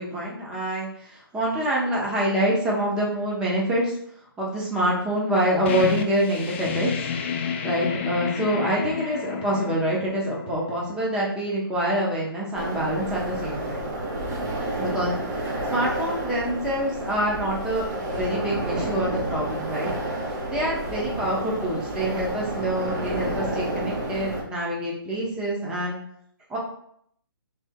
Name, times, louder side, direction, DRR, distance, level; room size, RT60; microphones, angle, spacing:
voice 1, 0.0-4.0 4.4-6.9 7.6-13.9 14.8-15.2 15.7-19.9 20.5-26.0 26.5-26.6, right 1 dB, 5° right, -5 dB, 0.9 m, -26 dB
sound 1, 5.7-11.1, left 6 dB, 30° left, 0.4 m, -30 dB
sound 2, 12.5-24.4, right 1 dB, 45° right, 1.1 m, -30 dB
3.5 x 3.3 x 4.5 m, 0.70 s
figure-of-eight pair, 145°, 13 cm